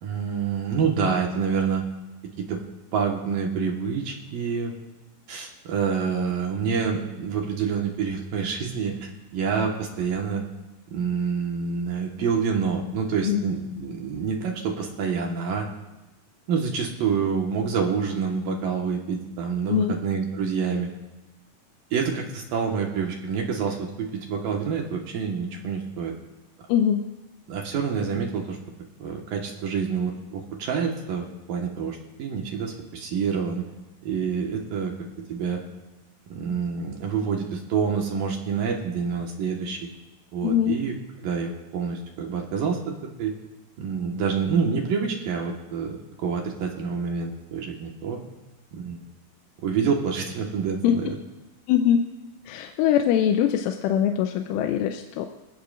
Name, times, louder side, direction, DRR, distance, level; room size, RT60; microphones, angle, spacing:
voice 1, 0.0-1.9 2.4-2.6 2.9-4.7 5.3-10.4 10.9-15.7 16.5-20.9 21.9-26.1 27.5-28.6 29.0-33.6 34.0-34.9 35.3-35.6 36.3-39.9 40.3-41.0 41.2-42.9 43.2-43.3 43.8-48.2 48.7-49.0 49.6-51.2, right 6 dB, 65° right, 1 dB, 2.5 m, -27 dB
voice 2, 26.7-27.1 40.4-40.8 50.8-51.0 51.7-52.0 52.5-55.3, left 9 dB, 90° left, 5 dB, 3.2 m, -22 dB
27.0 x 16.0 x 2.5 m, 1.1 s
omnidirectional pair, 5.5 m